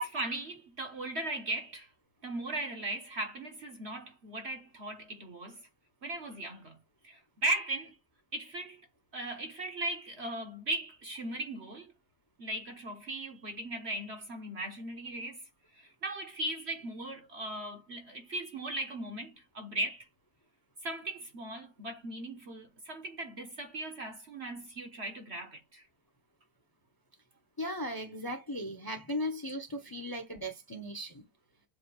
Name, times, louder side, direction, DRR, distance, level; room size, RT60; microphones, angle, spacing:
voice 1, 0.0-1.9 2.2-5.6 6.0-6.8 7.0-7.9 8.3-8.8 9.1-11.9 12.4-15.4 15.7-20.1 20.8-25.8, right 1 dB, 45° right, 1.2 m, -38 dB
voice 2, 27.6-31.2, equal, 15° left, 0.9 m, -37 dB
7.6 x 2.8 x 4.8 m
omnidirectional pair, 1.8 m